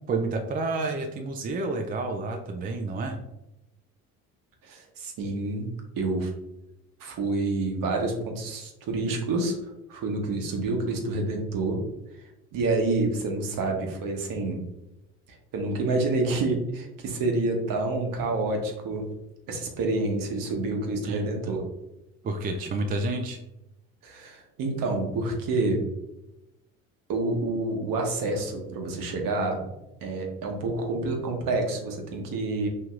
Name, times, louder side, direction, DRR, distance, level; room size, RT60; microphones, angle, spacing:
voice 1, 0.1-3.2 21.0-21.3 22.2-23.4, right 3 dB, 25° right, 4 dB, 0.3 m, -29 dB
voice 2, 4.6-5.7 6.0-6.3 7.0-9.6 9.9-11.8 12.5-14.6 15.5-19.1 19.5-21.7 24.0-25.9 27.1-29.7 30.0-32.7, right 2 dB, 50° right, 2 dB, 1.0 m, -28 dB
4.6 x 2.8 x 2.4 m, 0.91 s
hypercardioid pair, 65°, 42 cm